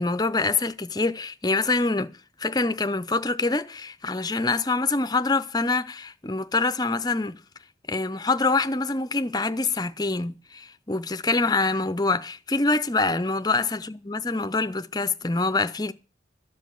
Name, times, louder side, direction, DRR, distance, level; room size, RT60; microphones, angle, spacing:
voice 1, 0.0-2.1 2.4-7.4 7.9-15.9, left 3 dB, 20° left, 0.7 m, -25 dB
13.5 x 5.3 x 9.3 m
head